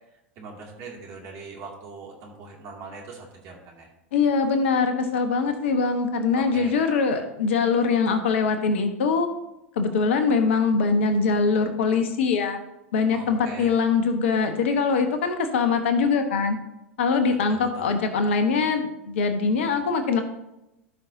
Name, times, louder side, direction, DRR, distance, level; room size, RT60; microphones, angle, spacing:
voice 1, 0.4-3.9 6.3-6.7 13.1-13.8 17.5-17.9, right 4 dB, 40° right, 0 dB, 2.5 m, -41 dB
voice 2, 4.1-9.3 9.8-12.6 12.9-16.6 17.0-20.2, left 5 dB, 60° left, 7 dB, 1.2 m, -22 dB
15.5 x 5.7 x 2.8 m, 0.90 s
figure-of-eight pair, 90°, 7 cm